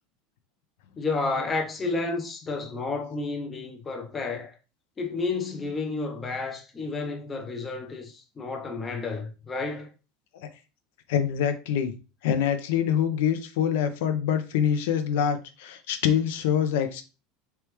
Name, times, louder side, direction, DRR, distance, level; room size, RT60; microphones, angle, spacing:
voice 1, 1.0-4.6 5.0-9.9, left 3 dB, 15° left, 0.5 m, -31 dB
voice 2, 11.1-11.9 12.2-17.0, left 8 dB, 70° left, 0.6 m, -25 dB
3.4 x 3.4 x 3.0 m
supercardioid pair, 175°, 0 cm